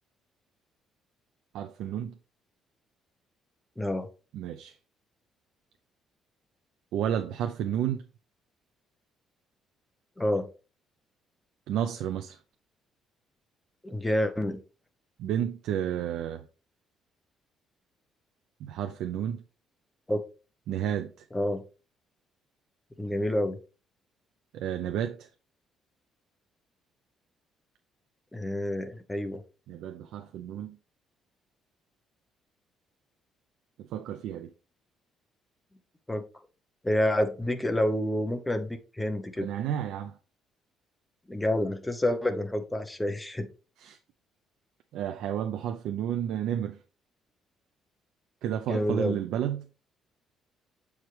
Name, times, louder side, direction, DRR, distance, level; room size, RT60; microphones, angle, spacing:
voice 1, 1.5-2.1 4.3-4.8 6.9-8.0 11.7-12.4 15.2-16.5 18.6-19.4 20.7-21.3 24.5-25.3 29.7-30.8 33.8-34.5 39.4-40.2 43.8-44.0 44.9-46.8 48.4-49.7, right 10 dB, 75° right, 0.5 m, -31 dB
voice 2, 3.8-4.1 10.2-10.5 13.8-14.6 20.1-20.2 21.3-21.6 23.0-23.6 28.3-29.4 36.1-36.2 36.8-39.5 41.3-43.5 48.7-49.2, left 1 dB, 5° left, 0.6 m, -28 dB
7.2 x 4.7 x 3.2 m
cardioid pair, 165°, 0 cm